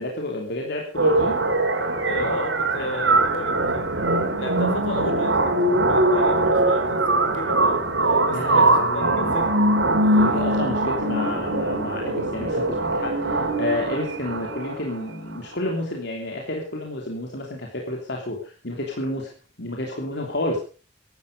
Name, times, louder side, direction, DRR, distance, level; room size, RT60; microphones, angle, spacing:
voice 1, 0.0-1.4 3.1-3.2 8.3-9.7 10.1-19.3 19.6-20.6, left 1 dB, 65° left, 0 dB, 3.2 m, -30 dB
sound 1, 1.0-14.9, right 2 dB, 80° right, 3.5 m, -22 dB
voice 2, 2.0-3.8 4.4-9.6 10.0-10.3, left 1 dB, 80° left, 5 dB, 5.5 m, -34 dB
15.5 x 12.5 x 5.3 m, 0.39 s
head